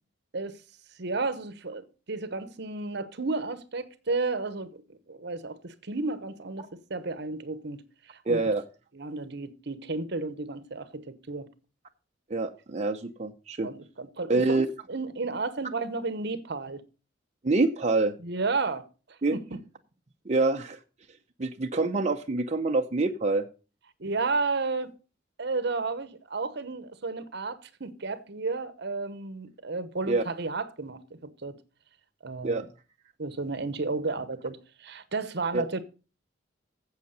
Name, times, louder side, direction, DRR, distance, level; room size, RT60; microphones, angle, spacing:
voice 1, 1.0-4.8 5.1-7.8 8.1-8.4 8.9-11.5 13.6-16.8 18.2-19.6 24.0-24.9 25.4-31.6 32.2-32.7 33.2-35.8, right 3 dB, 65° right, 1.1 m, -32 dB
voice 2, 8.3-8.6 12.3-13.7 14.3-14.7 17.4-18.1 19.2-19.3 20.3-20.8 21.4-23.4 30.1-30.2 32.4-32.6 35.5-35.6, right 3 dB, 40° right, 0.7 m, -26 dB
8.3 x 7.6 x 6.7 m
head